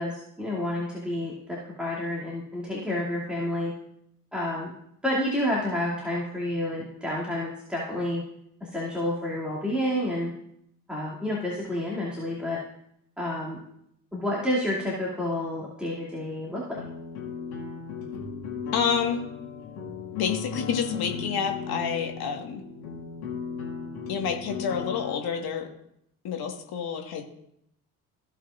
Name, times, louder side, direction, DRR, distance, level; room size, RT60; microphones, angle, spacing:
voice 1, 0.0-3.7 4.3-4.7 5.0-8.2 8.6-10.3 10.9-12.6 13.2-13.6 14.1-16.6, left 1 dB, ahead, -7 dB, 2.6 m, -29 dB
sound 1, 16.8-25.2, left 6 dB, 75° left, 2.2 m, -36 dB
voice 2, 18.7-19.2 20.2-22.6 24.1-25.7 26.2-27.2, left 7 dB, 50° left, 3 dB, 1.7 m, -28 dB
16.5 x 5.5 x 2.5 m, 0.74 s
figure-of-eight pair, 50°, 46 cm